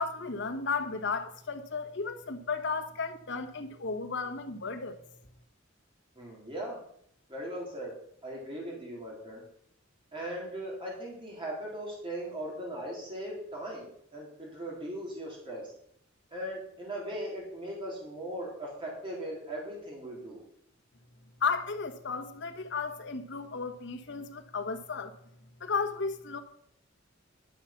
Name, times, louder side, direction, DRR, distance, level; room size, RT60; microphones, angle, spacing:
voice 1, 0.0-4.9 21.4-25.1 25.6-26.4, left 4 dB, 60° left, 1.3 m, -34 dB
voice 2, 6.2-6.8 7.3-7.9 8.2-9.4 10.1-15.7 16.3-20.4, right 1 dB, 25° right, 3.5 m, -39 dB
11.0 x 7.3 x 5.8 m
head